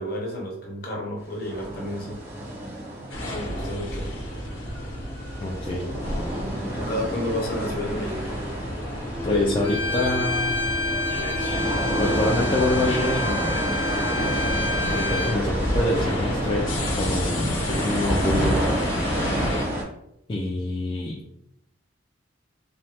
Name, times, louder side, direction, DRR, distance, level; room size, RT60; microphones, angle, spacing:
voice 1, 0.0-2.2 3.2-4.1 5.6-5.7 6.7-8.5, left 1 dB, 50° left, 0 dB, 0.8 m, -31 dB
sound 1, 1.4-4.9 5.2-19.8, right 1 dB, 55° right, 0.9 m, -31 dB
sound 2, 3.1-19.6, left 1 dB, 85° left, 0.8 m, -29 dB
voice 2, 5.4-5.9 9.2-10.6 12.0-13.6 14.9-16.7 16.9-18.6 20.3-21.2, left 1 dB, 25° left, -4 dB, 0.3 m, -26 dB
Bowed string instrument, 9.6-15.4, left 2 dB, 80° right, 1.3 m, -29 dB
3.1 x 2.2 x 2.7 m, 0.79 s
head